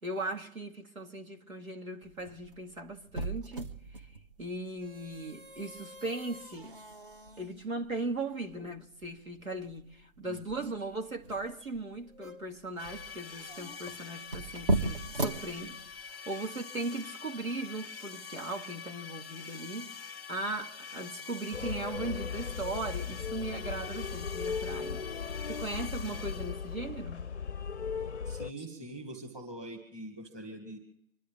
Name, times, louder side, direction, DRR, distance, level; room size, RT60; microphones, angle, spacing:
voice 1, 0.0-4.1 4.4-6.8 7.4-16.0 16.3-25.1 25.5-27.3, right 2 dB, 80° right, 2.5 m, -38 dB
sound 1, 2.0-16.2, right 2 dB, 40° right, 1.9 m, -39 dB
voice 2, 10.2-10.7 28.3-30.8, right 1 dB, 10° right, 2.0 m, -44 dB
sound 2, 12.8-26.9, left 6 dB, 15° left, 0.8 m, -45 dB
sound 3, 21.5-28.5, left 6 dB, 55° left, 0.6 m, -37 dB
26.5 x 11.5 x 3.5 m
figure-of-eight pair, 150°, 41 cm